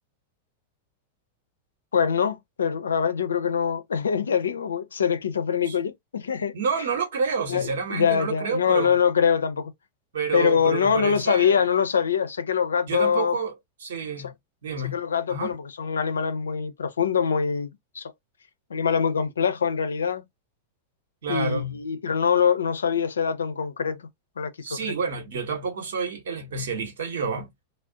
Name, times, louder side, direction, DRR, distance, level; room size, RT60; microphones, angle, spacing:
voice 1, 1.9-6.5 7.5-9.7 10.3-13.4 14.8-18.1 18.7-20.2 21.3-24.1 24.4-25.0, left 7 dB, 70° left, 0.5 m, -24 dB
voice 2, 6.5-8.9 10.1-11.6 12.9-13.6 13.8-14.3 14.6-14.9 15.3-15.5 21.2-21.7 24.6-27.5, right 5 dB, 60° right, 1.0 m, -29 dB
2.5 x 2.0 x 3.7 m
figure-of-eight pair, 90°, 0 cm